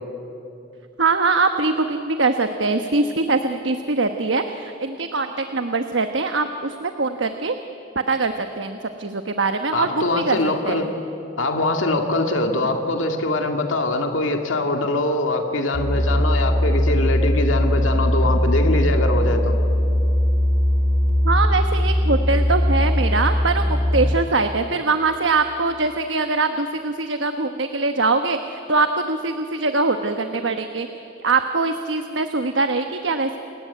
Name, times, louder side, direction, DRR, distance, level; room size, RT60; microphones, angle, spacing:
voice 1, 1.0-7.5 8.1-10.4 10.6-10.9 21.2-30.9 31.2-33.4, right 3 dB, 70° right, 7 dB, 1.2 m, -22 dB
voice 2, 9.7-10.9 11.4-19.5, left 2 dB, 90° left, 4 dB, 2.1 m, -23 dB
sound 1, 15.7-24.1, equal, 40° left, 3.5 m, -20 dB
29.5 x 20.5 x 9.3 m, 2.8 s
head